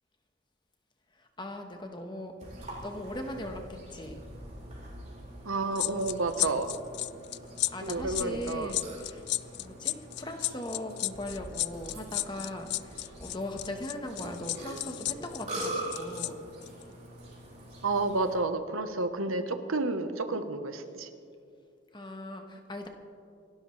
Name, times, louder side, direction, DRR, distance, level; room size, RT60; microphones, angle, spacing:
voice 1, 1.1-4.2 7.7-9.2 9.6-16.4 21.9-22.9, left 1 dB, 20° left, 4 dB, 1.2 m, -39 dB
Burping eructation, 2.4-18.3, right 1 dB, 35° right, 4.0 m, -43 dB
voice 2, 5.4-6.8 7.8-8.7 17.8-21.1, right 3 dB, 90° right, 8 dB, 1.0 m, -30 dB
sound 1, 5.8-16.3 16.6-16.8, left 18 dB, 55° left, 0.3 m, -33 dB
27.0 x 12.5 x 3.3 m, 2.5 s
head